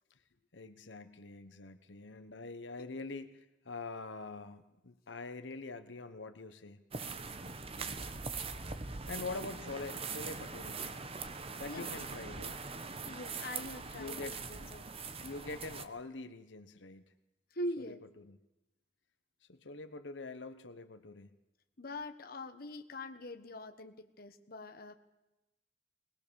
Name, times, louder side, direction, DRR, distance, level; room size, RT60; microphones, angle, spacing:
voice 1, 0.5-6.8 8.7-10.8 11.6-12.6 13.9-14.7 15.2-17.0 17.8-18.4 19.5-21.3, left 3 dB, 85° left, 10 dB, 1.1 m, -45 dB
sound 1, 6.9-15.8, right 4 dB, 30° right, 1.1 m, -42 dB
voice 2, 11.7-12.1 13.0-14.9 17.5-18.0 21.8-25.0, left 1 dB, 55° left, 7 dB, 1.3 m, -43 dB
21.0 x 20.0 x 7.1 m, 0.99 s
head